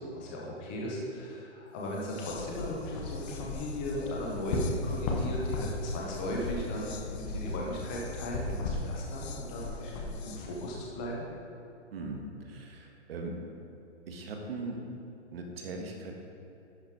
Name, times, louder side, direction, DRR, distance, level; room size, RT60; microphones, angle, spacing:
voice 1, 0.1-11.3, equal, 10° left, -3 dB, 0.4 m, -37 dB
sound 1, 1.9-10.9, left 5 dB, 60° left, 0.8 m, -43 dB
sound 2, 2.6-11.1, left 2 dB, 30° left, 1.1 m, -37 dB
voice 2, 11.9-12.2 12.5-13.3 14.1-14.8 15.3-16.1, right 3 dB, 55° right, 1 dB, 1.6 m, -39 dB
11.5 x 4.9 x 4.6 m, 2.9 s
hypercardioid pair, 150°, 36 cm